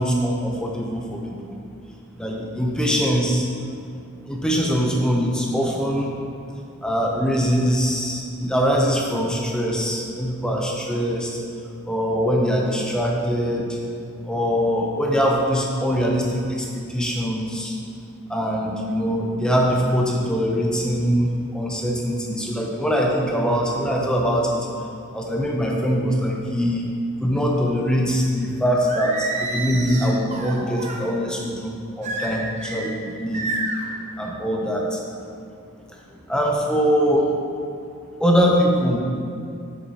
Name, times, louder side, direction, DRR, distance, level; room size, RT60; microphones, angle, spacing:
voice 1, 0.0-1.6 2.2-3.4 4.3-6.1 6.8-11.4 11.9-13.7 14.3-17.8 18.3-24.7 25.1-26.8 27.2-33.5 34.2-35.0 36.3-37.3 38.2-39.0, equal, 5° left, -1 dB, 0.6 m, -22 dB
Singing, 28.9-31.0 32.0-32.9 33.3-33.9, right 3 dB, 35° right, 0.6 m, -29 dB
7.7 x 6.5 x 2.8 m, 2.5 s
head